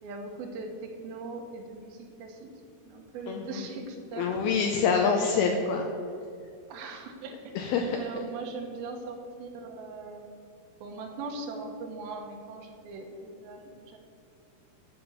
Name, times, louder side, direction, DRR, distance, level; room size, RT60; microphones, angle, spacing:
voice 1, 0.0-2.5 2.9-4.3 5.0-5.5 6.7-7.4 8.0-10.3 10.8-14.0, right 3 dB, 70° right, 3 dB, 2.7 m, -40 dB
voice 2, 3.3-3.7 4.2-5.9 7.6-8.2, left 5 dB, 80° left, 2 dB, 2.4 m, -26 dB
12.0 x 5.2 x 6.7 m, 2.4 s
omnidirectional pair, 4.7 m